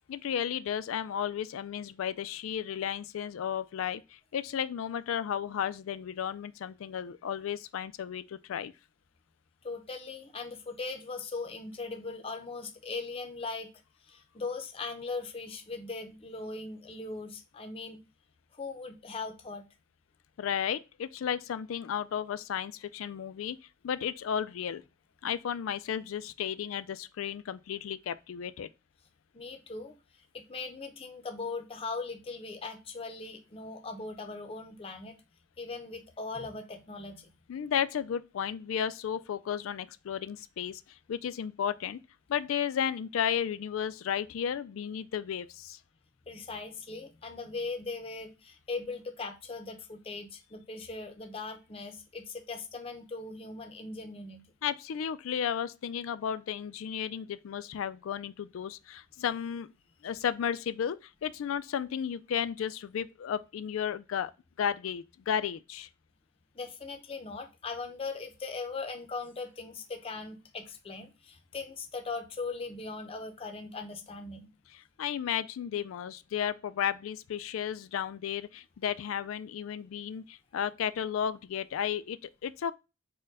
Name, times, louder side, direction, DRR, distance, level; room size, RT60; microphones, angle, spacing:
voice 1, 0.1-8.7 20.4-23.6 23.8-24.8 25.2-28.7 37.5-42.0 42.3-45.8 54.6-59.7 60.0-64.3 64.6-65.9 74.7-82.7, left 8 dB, 80° left, 0.3 m, -33 dB
voice 2, 9.6-13.7 14.0-18.0 18.5-19.6 29.3-35.2 35.6-37.3 46.3-54.4 66.5-74.5, left 3 dB, 30° left, 0.6 m, -39 dB
4.4 x 2.2 x 4.7 m
head